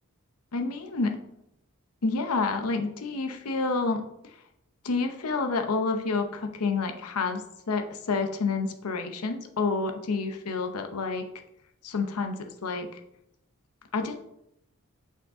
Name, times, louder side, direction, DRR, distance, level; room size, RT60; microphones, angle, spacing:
voice 1, 0.5-1.2 2.0-4.0 4.8-11.2 11.8-13.0 13.9-14.2, left 4 dB, 90° left, 6 dB, 0.8 m, -29 dB
6.5 x 5.2 x 3.7 m, 0.79 s
head